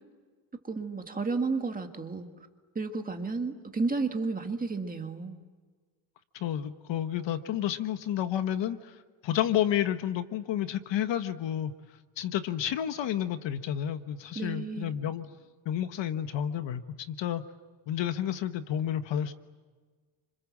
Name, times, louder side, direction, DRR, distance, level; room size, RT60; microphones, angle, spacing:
voice 1, 0.6-2.3 2.8-5.4 14.4-14.9, right 4 dB, 15° right, 5 dB, 2.0 m, -32 dB
voice 2, 6.3-9.0 9.2-11.7 12.2-15.3 15.6-17.4 17.9-19.3, left 10 dB, 60° left, 10 dB, 1.4 m, -30 dB
29.5 x 27.0 x 7.4 m, 1.4 s
cardioid pair, 155°, 50 cm